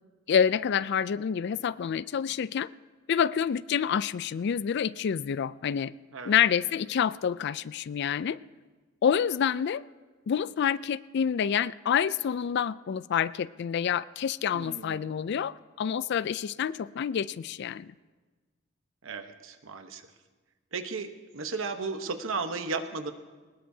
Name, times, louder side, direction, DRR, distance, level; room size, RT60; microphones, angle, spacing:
voice 1, 0.3-2.7 3.1-5.9 6.2-8.4 9.0-9.8 10.3-17.9, left 8 dB, 55° left, 18 dB, 0.3 m, -28 dB
voice 2, 14.5-15.1 19.0-20.0 20.7-23.1, right 4 dB, 75° right, 7 dB, 1.0 m, -35 dB
21.5 x 19.5 x 2.8 m, 1.3 s
head